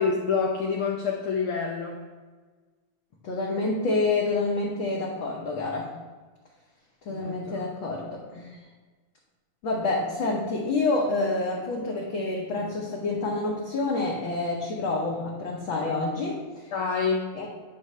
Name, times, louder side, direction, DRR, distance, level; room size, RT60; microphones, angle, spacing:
voice 1, 0.0-2.0 7.1-7.5 16.7-17.5, left 5 dB, 80° left, -1 dB, 1.2 m, -27 dB
voice 2, 3.2-5.9 7.0-8.6 9.6-16.7 17.3-17.5, left 3 dB, 60° left, -3 dB, 1.4 m, -28 dB
9.5 x 3.5 x 5.4 m, 1.4 s
omnidirectional pair, 3.3 m